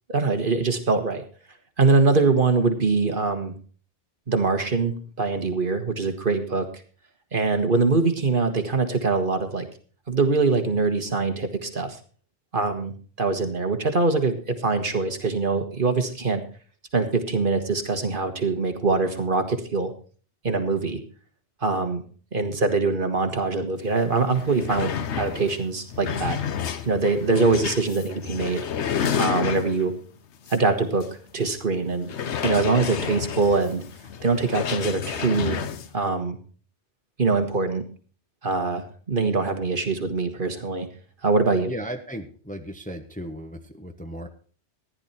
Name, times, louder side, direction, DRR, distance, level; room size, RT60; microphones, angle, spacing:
voice 1, 0.1-1.2 1.8-3.6 4.3-6.7 7.3-9.7 10.1-12.0 12.5-16.4 16.9-19.9 20.4-21.0 21.6-22.0 22.3-26.4 26.8-28.6 29.2-29.9 30.5-31.1 31.3-32.1 32.4-33.8 34.2-35.6 35.9-36.4 37.2-37.8 38.4-40.9 41.2-41.7, right 3 dB, 50° right, 7 dB, 1.6 m, -23 dB
sound 1, 23.9-24.0 24.3-30.0 30.5-30.6 31.0-31.1 32.0-35.9, left 7 dB, 70° left, 1.1 m, -30 dB
voice 2, 41.7-44.3, equal, 5° left, 5 dB, 1.1 m, -36 dB
14.5 x 10.5 x 4.3 m, 0.41 s
omnidirectional pair, 1.2 m